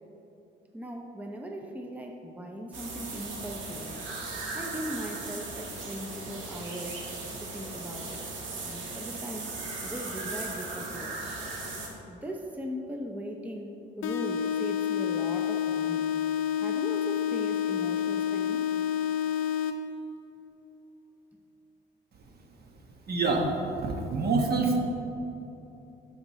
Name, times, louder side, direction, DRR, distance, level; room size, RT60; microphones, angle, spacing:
voice 1, 0.7-4.0 4.5-7.0 7.4-8.2 8.6-11.2 12.1-16.1 16.6-18.7, equal, 5° right, 2 dB, 0.6 m, -39 dB
sound 1, 2.7-11.9, right 3 dB, 75° right, 1.5 m, -37 dB
sound 2, 14.0-20.0, left 9 dB, 85° left, 0.5 m, -29 dB
voice 2, 23.1-24.8, right 3 dB, 55° right, 2 dB, 1.2 m, -26 dB
12.0 x 5.0 x 3.1 m, 3.0 s
cardioid pair, 90°, 20 cm